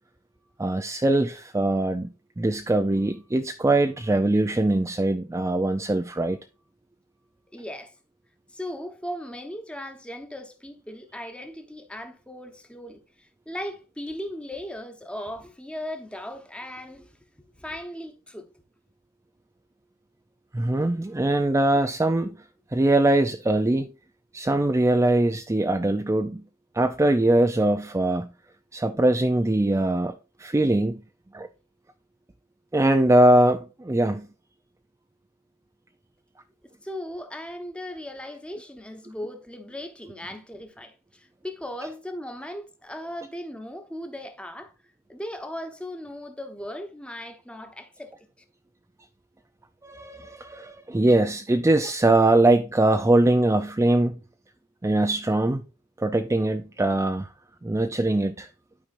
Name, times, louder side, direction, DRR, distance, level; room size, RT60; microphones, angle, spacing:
voice 1, 0.6-2.1 2.4-6.4 20.5-22.4 22.7-23.9 24.3-26.4 26.7-28.3 28.7-31.0 31.3-31.5 32.7-34.3 49.8-54.2 54.8-55.6 56.0-57.3 57.6-58.5, right 1 dB, 15° right, 0.4 m, -22 dB
voice 2, 7.5-7.9 8.5-17.2 17.5-18.5 36.8-44.7 45.1-48.1, left 1 dB, 5° left, 1.0 m, -37 dB
12.0 x 4.9 x 2.5 m
head